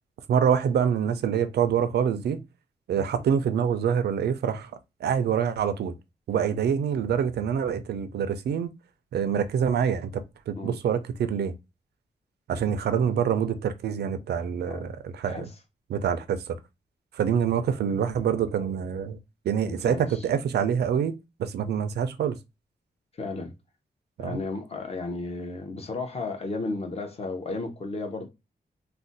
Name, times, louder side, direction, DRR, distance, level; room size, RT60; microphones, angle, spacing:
voice 1, 0.3-2.4 2.9-4.7 5.0-5.9 6.3-8.7 9.1-11.5 12.5-15.5 15.9-16.6 17.1-19.2 19.4-21.1 21.4-22.4 24.2-24.4, right 8 dB, 85° right, 0.4 m, -26 dB
voice 2, 14.6-14.9 15.2-15.5 19.6-20.3 23.2-23.5 24.2-28.3, left 3 dB, 40° left, 0.7 m, -34 dB
2.5 x 2.1 x 3.9 m
wide cardioid pair, 160°, 16 cm